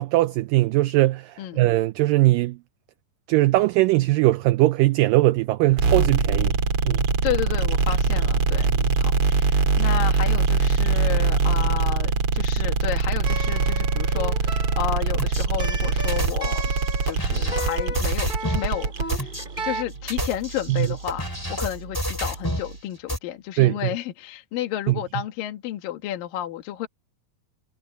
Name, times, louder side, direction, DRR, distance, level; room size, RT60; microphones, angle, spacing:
voice 1, 0.0-2.6 3.3-6.6 6.9-7.1 8.8-8.9 20.7-20.9 23.6-23.8 24.9-25.0, right 18 dB, 80° right, 2.0 m, -20 dB
sound 1, 5.7-22.8, right 5 dB, 40° right, 3.3 m, -23 dB
voice 2, 7.2-8.7 9.0-16.6 17.0-19.3 19.6-26.9, left 12 dB, 70° left, 3.0 m, -31 dB
sound 2, 13.2-19.8, right 2 dB, 15° right, 5.2 m, -35 dB
sound 3, 15.2-15.5 16.1-18.7 19.1-19.4 20.0-22.7 23.1-23.2, equal, 5° left, 6.0 m, -30 dB
omnidirectional pair, 4.4 m